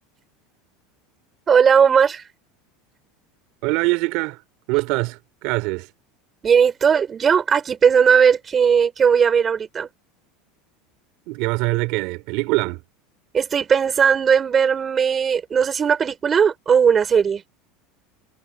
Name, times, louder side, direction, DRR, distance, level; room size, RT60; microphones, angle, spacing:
voice 1, 1.5-2.3 6.4-9.9 13.3-17.4, right 7 dB, 25° right, 5.2 m, -17 dB
voice 2, 3.6-4.4 4.7-5.9 11.3-12.8, right 24 dB, 65° right, 3.0 m, -23 dB
supercardioid pair, 125°, 0 cm